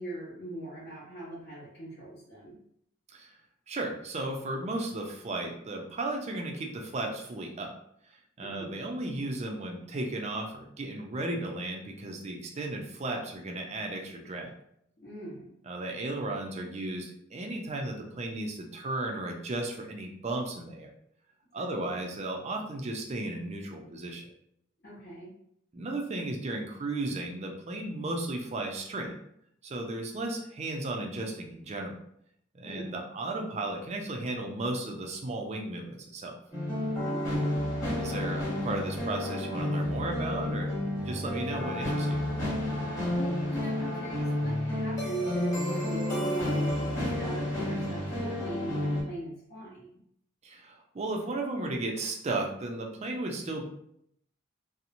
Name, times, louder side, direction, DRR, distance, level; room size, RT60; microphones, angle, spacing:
voice 1, 0.0-2.6 8.4-8.8 15.0-15.5 21.6-22.0 24.8-25.3 32.6-32.9 37.0-37.6 42.8-49.9, right 1 dB, 50° left, -9 dB, 0.8 m, -40 dB
voice 2, 3.7-7.7 8.4-14.5 15.7-20.9 21.5-24.3 25.7-29.1 29.6-31.9 32.5-36.3 38.0-40.8 41.0-42.2 50.4-53.6, right 2 dB, 35° right, 2 dB, 0.4 m, -35 dB
sound 1, 36.5-49.0, left 1 dB, 15° left, 1.0 m, -31 dB
2.8 x 2.0 x 2.5 m, 0.72 s
head